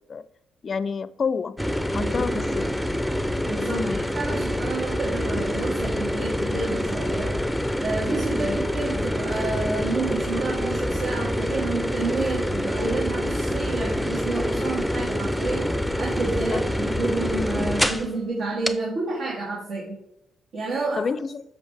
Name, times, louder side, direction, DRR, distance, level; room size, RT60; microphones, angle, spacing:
voice 1, 0.6-1.6 1.9-2.6 3.7-4.0 8.3-8.6 14.5-14.6 16.5-16.6 21.0-21.4, left 5 dB, 45° left, 16 dB, 0.5 m, -29 dB
sound 1, 1.6-18.1 18.7-18.8, equal, ahead, 0.6 m, -26 dB
voice 2, 1.9-2.5 3.5-7.3 7.8-20.0 20.5-21.1, right 3 dB, 70° right, -5 dB, 2.0 m, -29 dB
8.0 x 6.3 x 3.4 m, 0.83 s
cardioid pair, 80°, 0 cm